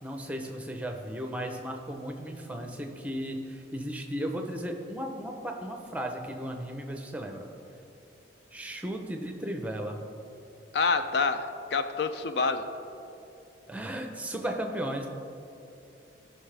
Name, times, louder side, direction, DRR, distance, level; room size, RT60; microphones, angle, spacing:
voice 1, 0.0-7.5 8.5-10.0 13.7-15.1, equal, 5° right, 3 dB, 0.7 m, -35 dB
voice 2, 10.7-11.5 11.7-12.7, left 4 dB, 60° left, 9 dB, 0.4 m, -26 dB
15.5 x 5.7 x 3.3 m, 2.8 s
head